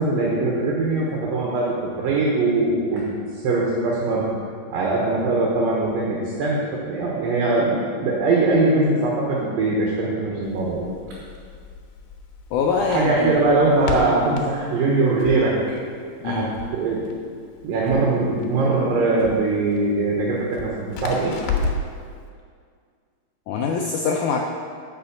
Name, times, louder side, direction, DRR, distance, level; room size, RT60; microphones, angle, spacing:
voice 1, 0.0-3.0 3.3-4.3 4.7-10.9 12.8-15.6 16.2-17.0 17.6-21.4, right 3 dB, 70° right, -3 dB, 2.9 m, -21 dB
Crackle, 10.4-22.0, left 3 dB, 65° left, 2.4 m, -34 dB
voice 2, 12.5-13.4 16.2-16.5 23.5-24.4, left 5 dB, 85° left, 0 dB, 1.7 m, -23 dB
10.5 x 6.3 x 7.1 m, 2.1 s
omnidirectional pair, 4.5 m